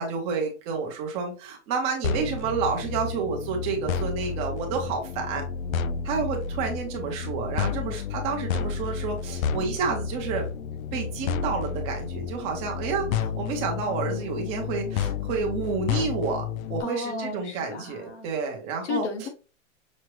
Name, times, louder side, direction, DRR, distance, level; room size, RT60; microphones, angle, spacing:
voice 1, 0.0-5.4 6.0-10.5 10.9-16.4 16.7-19.1, right 5 dB, 15° right, 0.7 m, -30 dB
sound 1, 2.0-16.8, left 6 dB, 90° left, 0.5 m, -31 dB
voice 2, 16.8-18.3 18.8-19.3, left 5 dB, 60° left, 1.2 m, -33 dB
6.2 x 2.1 x 3.0 m
hypercardioid pair, 165°, 40 cm